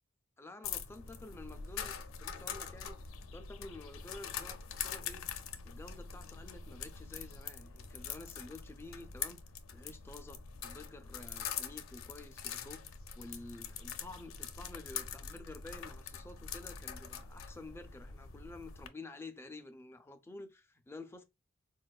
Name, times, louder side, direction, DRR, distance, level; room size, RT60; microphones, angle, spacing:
voice 1, 0.4-3.0 3.3-5.3 5.6-9.4 9.7-12.8 13.2-21.2, left 2 dB, 10° left, 0.3 m, -50 dB
sound 1, 0.6-18.9, left 7 dB, 85° left, 0.4 m, -44 dB
4.2 x 2.2 x 2.2 m
head